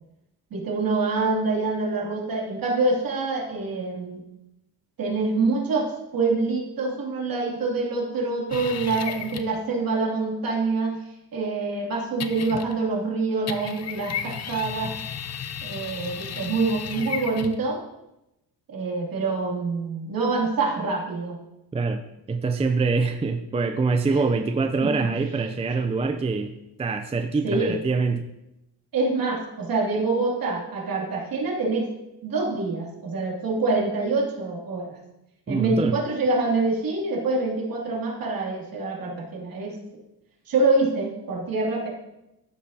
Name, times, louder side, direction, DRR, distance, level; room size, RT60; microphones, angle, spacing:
voice 1, 0.5-4.2 5.0-11.0 11.3-14.9 15.6-17.8 18.7-21.4 24.1-24.2 24.8-25.1 25.7-25.8 27.4-27.8 28.9-31.9 32.2-35.0 35.5-39.8 40.5-41.9, right 3 dB, 55° right, -2 dB, 2.7 m, -26 dB
sound 1, 8.5-9.6 12.2-12.9 13.5-17.7, left 8 dB, 40° left, 0.6 m, -34 dB
voice 2, 22.3-28.3 35.5-36.0, right 4 dB, 15° right, 6 dB, 0.4 m, -25 dB
15.0 x 6.6 x 2.8 m, 0.91 s
cardioid pair, 130°, 41 cm